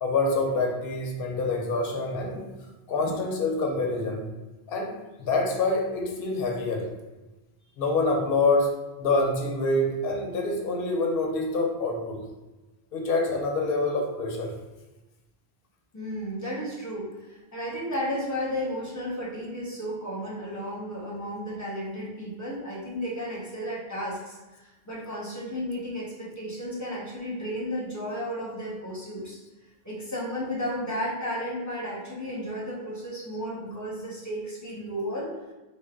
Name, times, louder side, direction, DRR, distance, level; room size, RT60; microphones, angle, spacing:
voice 1, 0.0-2.5 2.9-4.3 4.7-6.9 7.8-12.2 12.9-14.5, left 2 dB, 65° left, 1 dB, 0.8 m, -26 dB
voice 2, 15.9-29.4 29.8-35.3, equal, 20° left, -6 dB, 0.8 m, -33 dB
3.4 x 2.1 x 3.6 m, 1.1 s
omnidirectional pair, 1.0 m